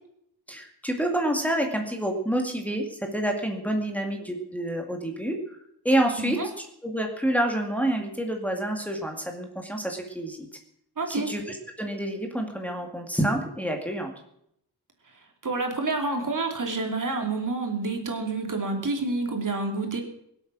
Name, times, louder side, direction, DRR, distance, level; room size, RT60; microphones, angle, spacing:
voice 1, 0.5-5.6 5.8-10.5 11.1-14.1, right 1 dB, 5° left, 2 dB, 2.2 m, -28 dB
voice 2, 6.2-6.5 11.0-11.3 15.1-20.0, right 3 dB, 50° right, 3 dB, 3.0 m, -28 dB
23.0 x 8.2 x 6.2 m, 0.72 s
wide cardioid pair, 125°, 40 cm